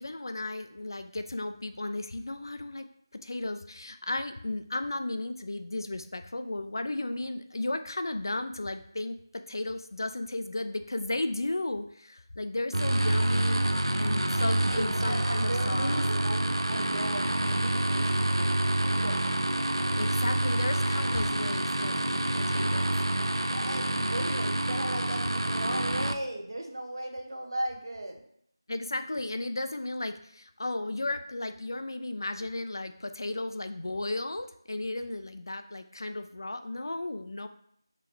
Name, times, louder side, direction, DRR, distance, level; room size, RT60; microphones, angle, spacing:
voice 1, 0.0-2.9 3.1-16.0 20.0-22.9 28.7-37.5, left 2 dB, 55° left, 9 dB, 0.3 m, -34 dB
sound 1, 12.7-26.1, right 1 dB, 90° right, 0.4 m, -27 dB
voice 2, 14.4-19.2 23.4-28.2, right 1 dB, 55° right, 2 dB, 0.8 m, -37 dB
3.8 x 3.3 x 3.0 m, 0.67 s
figure-of-eight pair, 170°, 2 cm